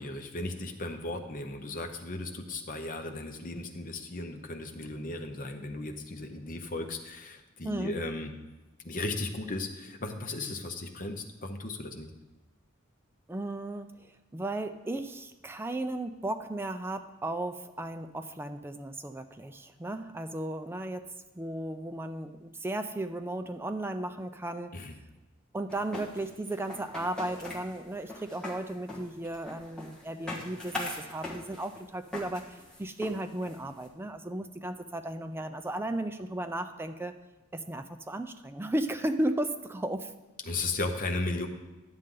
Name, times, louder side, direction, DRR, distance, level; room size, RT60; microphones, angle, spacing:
voice 1, 0.0-8.3 8.8-12.1 24.7-24.9 40.5-41.5, left 2 dB, 40° left, 5 dB, 0.8 m, -36 dB
voice 2, 7.6-7.9 13.3-21.1 21.3-24.7 25.5-37.1 37.5-40.1, right 1 dB, 10° right, 8 dB, 0.4 m, -35 dB
sound 1, 25.7-33.9, left 1 dB, 5° left, 1.4 m, -41 dB
10.5 x 7.6 x 3.8 m, 1.1 s
head